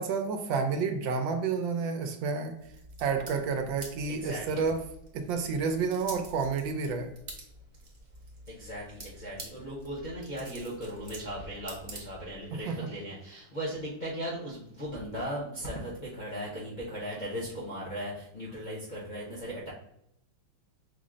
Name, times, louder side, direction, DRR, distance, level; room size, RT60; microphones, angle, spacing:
voice 1, 0.0-2.6 3.0-4.8 5.1-7.1 12.5-12.8, right 5 dB, 80° right, 7 dB, 1.3 m, -30 dB
sound 1, 2.6-12.5, right 2 dB, 40° right, 0.6 m, -48 dB
voice 2, 4.1-4.7 8.5-19.7, equal, 40° left, -6 dB, 0.6 m, -38 dB
5.5 x 2.0 x 3.7 m, 0.76 s
omnidirectional pair, 2.1 m